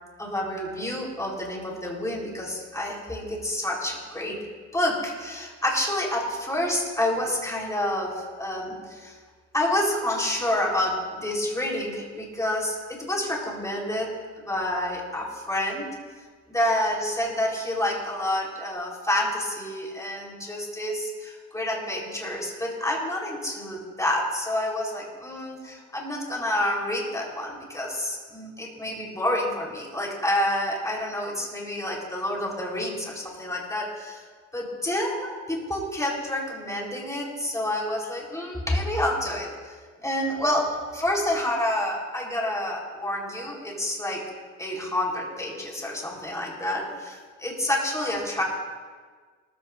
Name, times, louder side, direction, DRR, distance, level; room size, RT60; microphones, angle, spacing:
voice 1, 0.2-4.5 4.7-9.2 9.5-15.9 16.5-34.2 34.5-39.7 40.0-44.2 44.6-48.4, left 1 dB, 10° left, -2 dB, 4.1 m, -28 dB
19.0 x 15.0 x 2.6 m, 1.5 s
cardioid pair, 90°, 30 cm